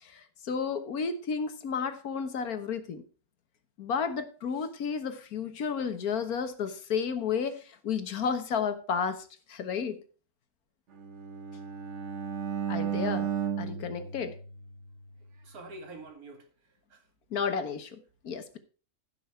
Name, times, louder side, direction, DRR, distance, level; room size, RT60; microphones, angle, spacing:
voice 1, 0.0-3.0 3.8-10.0 12.7-13.3 13.6-14.4 17.3-18.6, left 6 dB, 90° left, 1.7 m, -32 dB
Bowed string instrument, 10.9-15.1, right 8 dB, 55° right, 1.4 m, -34 dB
voice 2, 15.3-17.0 18.3-18.4, right 2 dB, 85° right, 2.4 m, -47 dB
15.0 x 6.0 x 4.5 m
omnidirectional pair, 1.5 m